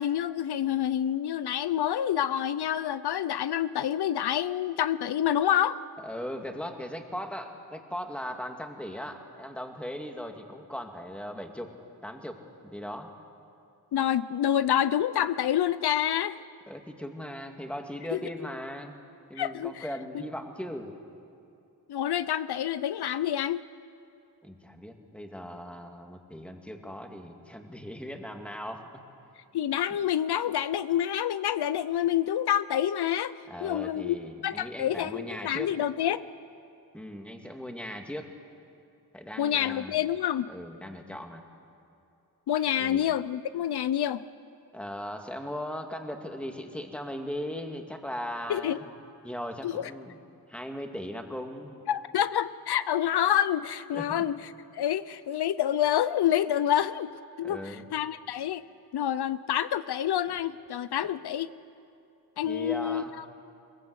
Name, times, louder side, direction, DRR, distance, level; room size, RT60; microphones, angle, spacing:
voice 1, 0.0-5.8 13.9-16.4 18.1-18.2 19.4-19.9 21.9-23.6 29.5-33.3 33.6-34.2 34.4-36.2 39.4-40.5 42.5-44.2 48.5-48.8 49.6-49.9 51.9-54.4 54.7-57.1 57.4-58.6 58.9-61.5 62.4-63.0, left 10 dB, 75° left, 15 dB, 0.7 m, -27 dB
voice 2, 6.0-11.7 12.0-12.4 12.6-13.1 16.7-19.0 19.3-20.9 24.4-29.0 33.5-35.7 36.9-38.3 39.1-40.0 40.5-41.4 42.8-43.1 44.7-48.9 49.2-50.2 50.5-51.8 53.9-54.3 57.4-57.9 62.4-63.1, equal, 5° left, 4 dB, 2.2 m, -38 dB
22.5 x 22.5 x 8.1 m, 2.6 s
wide cardioid pair, 110°, 39 cm